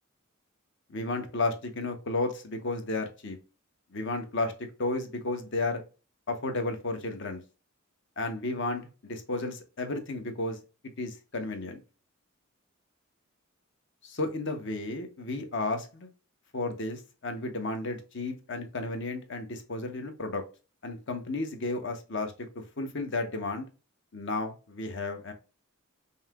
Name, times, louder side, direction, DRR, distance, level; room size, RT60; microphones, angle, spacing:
voice 1, 0.9-3.4 3.9-4.5 4.8-5.8 6.3-7.4 8.2-10.6 11.0-11.8 14.0-16.1 16.5-20.4 20.8-23.7 24.1-25.3, left 2 dB, 60° left, 6 dB, 1.0 m, -33 dB
5.5 x 2.8 x 2.3 m, 0.32 s
head